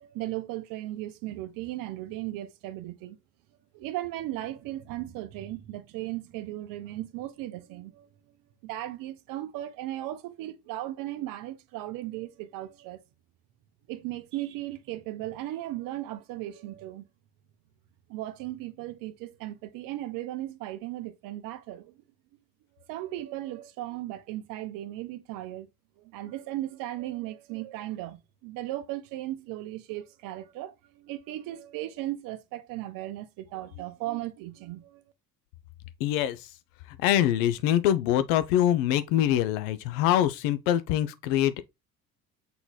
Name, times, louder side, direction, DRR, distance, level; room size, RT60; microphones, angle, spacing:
voice 1, 0.0-3.2 3.7-8.1 8.6-13.0 13.9-17.0 18.1-21.9 22.9-25.7 26.0-35.0, right 15 dB, 45° right, 0.7 m, -36 dB
voice 2, 36.0-36.4 37.0-41.6, left 11 dB, 55° left, 0.6 m, -24 dB
5.6 x 3.9 x 2.3 m
figure-of-eight pair, 60°, 46 cm